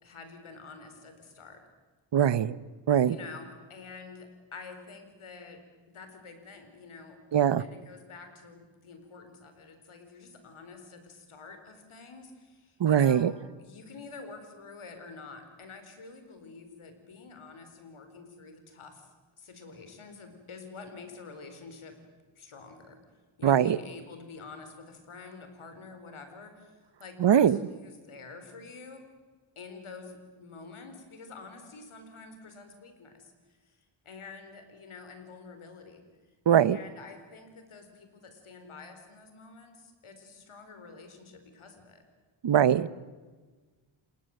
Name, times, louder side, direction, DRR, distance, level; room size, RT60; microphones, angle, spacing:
voice 1, 0.0-1.6 3.0-5.6 5.9-7.2 7.6-22.0 22.4-23.0 23.4-29.0 29.6-33.8 34.0-36.0 36.6-42.0, left 4 dB, 85° left, 7 dB, 4.5 m, -48 dB
voice 2, 2.1-2.6 2.9-3.2 7.3-7.6 12.8-13.3 23.4-23.8 27.2-27.6 36.5-36.8 42.4-42.9, right 9 dB, 60° right, 19 dB, 1.0 m, -21 dB
29.0 x 19.5 x 7.9 m, 1.4 s
cardioid pair, 65°, 49 cm